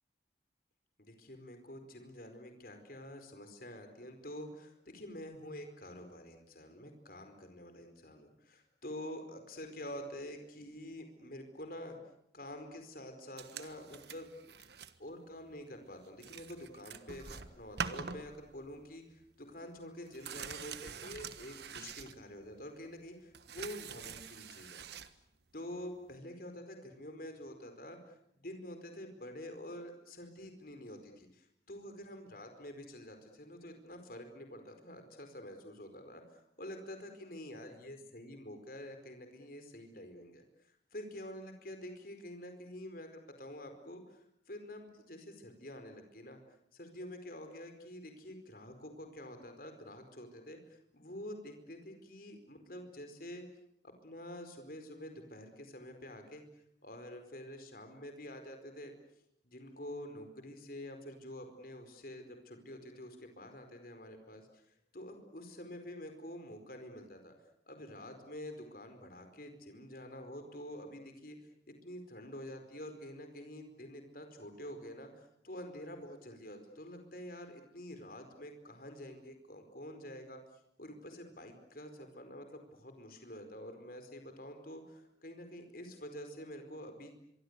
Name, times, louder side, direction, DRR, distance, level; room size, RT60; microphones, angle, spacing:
voice 1, 1.0-12.0 12.3-14.3 14.6-14.7 15.0-24.8 25.5-40.4 40.9-46.4 46.7-53.5 53.8-56.4 56.8-58.9 59.4-67.3 67.7-80.4 80.8-87.1, left 1 dB, 50° left, 6 dB, 4.7 m, -47 dB
sound 1, 13.4-15.0 15.3-15.6 15.9-16.0 16.2-18.9 19.1-19.2 19.5-22.6 23.0-25.1 26.2-26.3, right 6 dB, 65° right, 1.4 m, -45 dB
24.5 x 24.0 x 8.2 m, 0.76 s
head